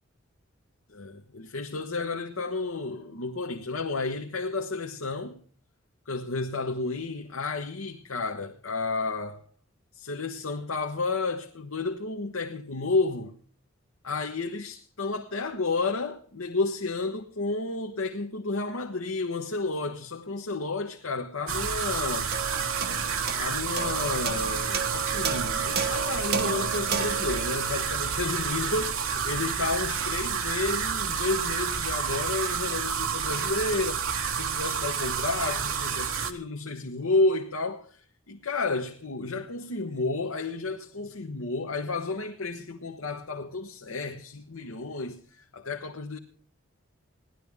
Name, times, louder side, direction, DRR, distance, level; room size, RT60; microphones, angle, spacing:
voice 1, 0.9-5.4 6.1-9.4 9.9-13.3 14.0-22.3 23.4-46.2, left 3 dB, 90° left, 1.3 m, -31 dB
sound 1, 21.5-36.3, right 7 dB, 85° right, 1.5 m, -29 dB
sound 2, 22.3-28.9, right 6 dB, 45° right, 1.1 m, -34 dB
18.5 x 12.0 x 3.6 m
head